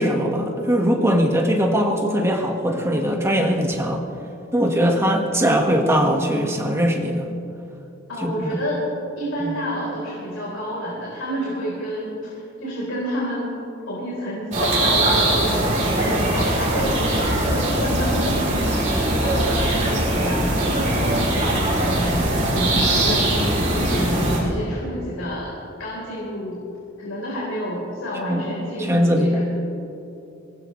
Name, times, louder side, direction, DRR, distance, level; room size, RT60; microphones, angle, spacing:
voice 1, 0.0-4.0 4.5-7.2 8.2-8.3 9.4-9.5 28.3-28.4 28.9-29.4, equal, 15° right, 1 dB, 1.6 m, -20 dB
voice 2, 8.1-18.8 19.2-22.2 22.5-25.5 25.8-26.6 27.0-29.4, equal, 75° left, -6 dB, 4.1 m, -29 dB
sound 1, 14.5-24.4, right 1 dB, 40° right, 4.1 m, -21 dB
23.5 x 19.0 x 3.2 m, 2.9 s
head